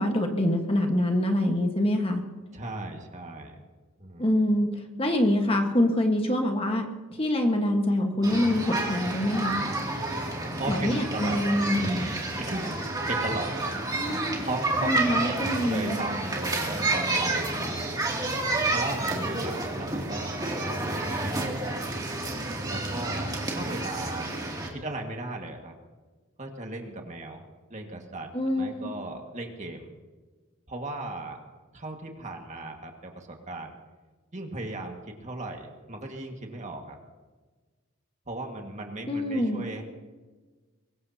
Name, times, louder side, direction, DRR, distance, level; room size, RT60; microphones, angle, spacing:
voice 1, 0.0-2.2 4.2-6.8 7.1-9.6 10.7-12.1 13.9-14.4 14.8-16.0 28.3-28.9 39.0-39.6, left 1 dB, 25° left, 3 dB, 1.4 m, -25 dB
voice 2, 2.5-3.6 4.0-4.3 10.6-11.4 12.4-12.7 13.1-13.7 14.4-17.9 18.7-21.9 22.6-24.3 24.7-25.7 26.4-27.4 27.7-28.3 28.5-29.9 30.7-31.4 31.7-33.8 34.3-37.0 38.3-39.8, right 2 dB, 35° right, 2 dB, 1.8 m, -36 dB
sound 1, 8.2-24.7, right 2 dB, 20° right, 2.6 m, -30 dB
23.0 x 19.5 x 2.9 m, 1.3 s
head